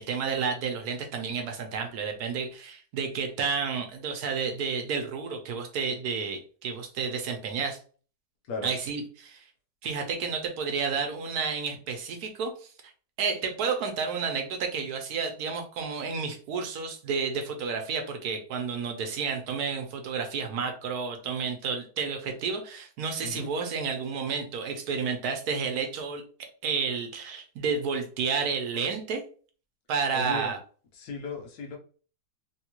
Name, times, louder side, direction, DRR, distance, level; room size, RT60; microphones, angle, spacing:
voice 1, 0.0-7.8 8.6-9.4 9.8-12.7 13.2-26.2 26.6-29.2 29.9-30.6, right 5 dB, 70° right, 4 dB, 1.1 m, -31 dB
voice 2, 23.2-23.5 30.1-30.6 30.9-31.8, left 3 dB, 70° left, 3 dB, 1.2 m, -36 dB
3.4 x 2.3 x 2.9 m, 0.40 s
omnidirectional pair, 1.7 m